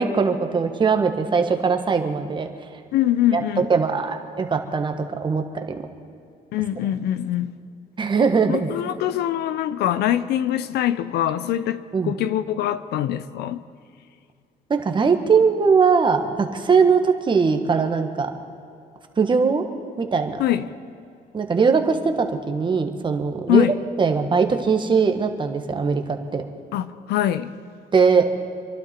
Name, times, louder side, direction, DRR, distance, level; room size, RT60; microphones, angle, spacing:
voice 1, 0.0-2.5 3.3-5.6 8.0-8.7 11.9-12.1 14.7-18.3 19.2-19.6 20.0-20.4 21.3-23.7 24.0-26.4 27.9-28.2, right 5 dB, 30° right, 1.6 m, -20 dB
voice 2, 2.9-3.7 6.5-7.5 8.5-13.6 20.4-20.7 23.5-23.7 26.7-27.5, left 12 dB, 75° left, 0.7 m, -23 dB
27.0 x 11.5 x 4.5 m
cardioid pair, 110°, 17 cm